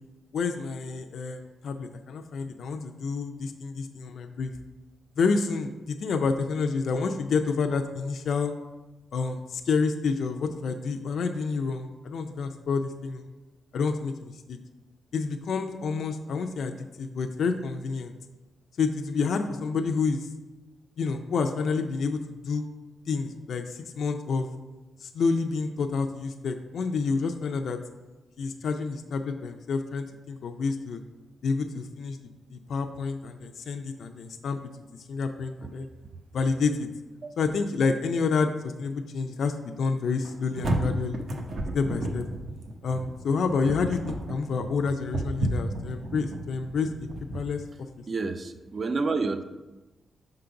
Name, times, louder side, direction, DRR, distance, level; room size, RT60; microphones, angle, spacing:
voice 1, 0.3-4.5 5.2-8.5 9.1-13.3 13.7-14.6 15.1-18.1 18.8-20.3 21.0-22.7 23.1-24.5 25.0-27.8 28.4-31.0 31.4-32.2 32.5-34.6 35.1-35.9 36.3-36.9 37.4-41.2 41.7-42.3 42.8-47.1 47.3-47.6, left 4 dB, 60° left, 5 dB, 0.4 m, -29 dB
sound 1, 40.2-47.4, right 1 dB, 55° right, 0.8 m, -32 dB
voice 2, 48.1-49.4, right 4 dB, 35° right, 9 dB, 0.4 m, -29 dB
5.9 x 3.8 x 5.7 m, 1.1 s
wide cardioid pair, 170°, 0 cm